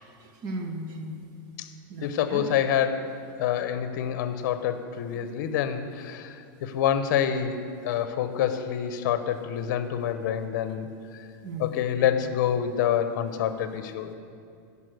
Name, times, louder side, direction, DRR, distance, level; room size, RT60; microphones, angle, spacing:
voice 1, 0.2-1.2 1.9-2.4 5.1-5.2 11.4-11.8, right 1 dB, 35° right, 4 dB, 1.0 m, -36 dB
voice 2, 2.0-10.9 11.6-14.1, left 9 dB, 60° left, 10 dB, 0.8 m, -27 dB
11.0 x 5.5 x 7.8 m, 2.4 s
supercardioid pair, 155°, 11 cm